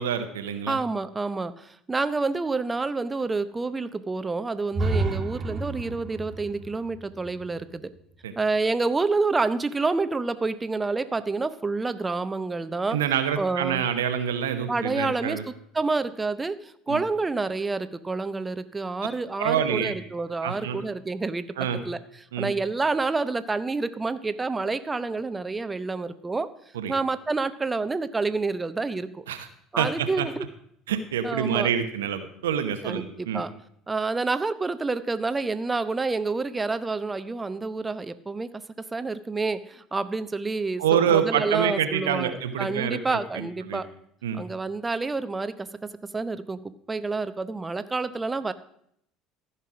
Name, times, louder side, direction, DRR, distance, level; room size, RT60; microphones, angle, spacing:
voice 1, 0.0-0.8 8.2-8.3 12.9-15.4 16.9-17.0 19.4-19.9 20.4-20.8 21.6-21.8 22.3-22.5 26.7-26.9 29.3-29.5 29.8-30.3 30.9-33.4 40.8-43.8 44.2-44.4, right 8 dB, 75° right, 9 dB, 0.9 m, -26 dB
voice 2, 0.7-7.9 8.4-13.0 13.4-13.8 14.7-15.4 15.7-21.5 21.8-22.0 22.4-26.5 26.9-29.2 29.7-30.5 31.2-31.7 32.8-33.5 33.9-38.5 38.8-43.9 44.3-45.7 46.1-46.6 46.9-48.5, right 3 dB, 20° right, 13 dB, 0.8 m, -28 dB
sound 1, 4.7-8.6, right 2 dB, 40° right, 1.7 m, -31 dB
14.0 x 5.7 x 6.2 m, 0.71 s
figure-of-eight pair, 65°, 0 cm